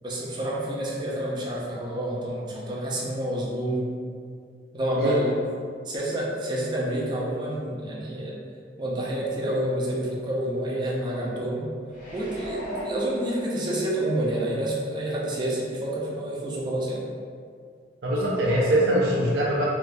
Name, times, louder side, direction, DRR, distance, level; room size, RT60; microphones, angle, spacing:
voice 1, 0.0-3.9 4.7-5.4 5.9-8.4 8.8-11.7 12.1-17.1, right 1 dB, 25° right, -4 dB, 0.5 m, -28 dB
sound 1, 11.9-14.0 14.4-14.5, right 1 dB, 50° left, 1.2 m, -37 dB
voice 2, 18.0-19.6, right 1 dB, 85° right, -5 dB, 0.5 m, -22 dB
3.3 x 2.7 x 2.5 m, 2.2 s
head